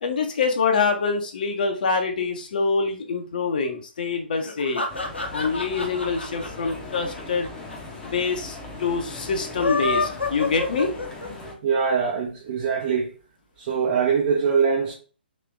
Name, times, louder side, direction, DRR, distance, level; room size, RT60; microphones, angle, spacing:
voice 1, 0.0-4.8 5.3-7.5 8.0-10.9, left 4 dB, 50° left, 0.7 m, -25 dB
sound 1, 4.4-7.7 8.0-8.1 8.3-8.4 9.4-11.5, left 3 dB, 85° left, 0.9 m, -28 dB
sound 2, 4.9-11.5, left 2 dB, 10° left, 0.8 m, -39 dB
voice 2, 11.6-13.1 13.6-14.9, right 6 dB, 40° right, 0.9 m, -22 dB
3.3 x 3.1 x 3.3 m
figure-of-eight pair, 130°, 6 cm